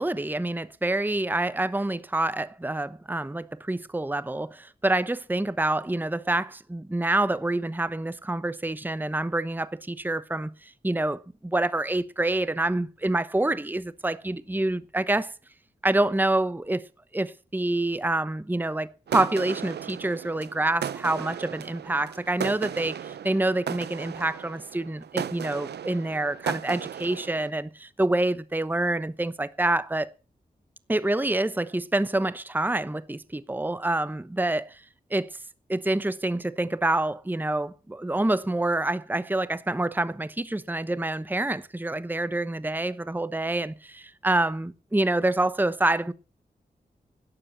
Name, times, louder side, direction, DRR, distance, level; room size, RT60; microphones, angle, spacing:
voice 1, 0.0-15.3 15.8-16.8 17.1-30.1 30.9-34.8 35.1-35.3 35.7-46.1, right 2 dB, 10° right, 0.9 m, -27 dB
sound 1, 19.1-27.5, right 9 dB, 90° right, 0.7 m, -36 dB
12.0 x 9.9 x 7.1 m
cardioid pair, 45°, 17 cm